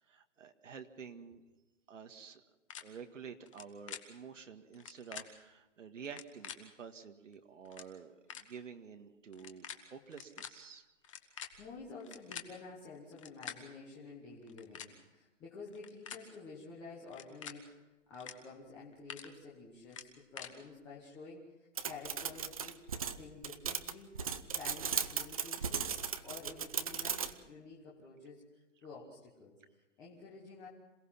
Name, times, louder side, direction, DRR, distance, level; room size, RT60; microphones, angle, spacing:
voice 1, 0.1-1.4 1.9-2.4 2.8-10.9, right 6 dB, 75° right, 5 dB, 1.9 m, -50 dB
sound 1, 2.7-2.8 3.5-4.0 4.7-5.2 6.0-6.6 7.3-7.4 7.6-7.9 8.3-8.4 9.3-9.8 10.1-10.5 11.0-12.5 13.1-13.6 14.4-14.9 15.7-16.2 17.1-17.5 18.1-18.3 18.7-19.3 19.9-20.5, left 9 dB, 25° left, 1.5 m, -45 dB
voice 2, 11.3-17.7 18.1-22.8 23.2-24.2 24.5-28.5 28.8-30.7, left 4 dB, 5° left, -5 dB, 1.1 m, -50 dB
sound 2, 21.8-27.3, right 6 dB, 30° right, 0.8 m, -37 dB
27.0 x 18.0 x 5.8 m, 1.1 s
hypercardioid pair, 175°, 37 cm